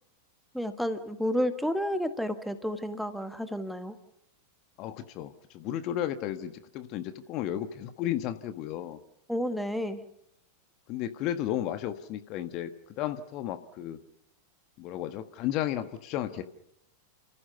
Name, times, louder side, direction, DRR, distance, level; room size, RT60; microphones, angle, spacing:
voice 1, 0.5-3.9 9.3-10.0, equal, ahead, 9 dB, 1.6 m, -31 dB
voice 2, 4.8-9.0 10.9-12.7 13.0-14.0 14.8-16.4, left 12 dB, 40° left, 9 dB, 1.4 m, -33 dB
30.0 x 15.0 x 6.9 m, 0.80 s
figure-of-eight pair, 90°, 0 cm